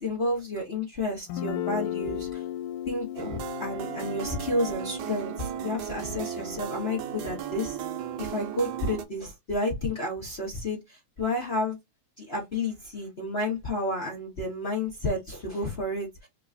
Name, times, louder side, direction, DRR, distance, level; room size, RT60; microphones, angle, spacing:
voice 1, 0.0-2.4 2.9-7.8 8.2-11.8 12.2-16.3, left 1 dB, 50° left, 0.7 m, -31 dB
Guitar, 1.3-9.0, left 11 dB, 90° left, 2.1 m, -38 dB
sound 1, 3.2-9.0, right 9 dB, 80° right, 2.1 m, -36 dB
4.7 x 3.0 x 2.5 m
omnidirectional pair, 3.5 m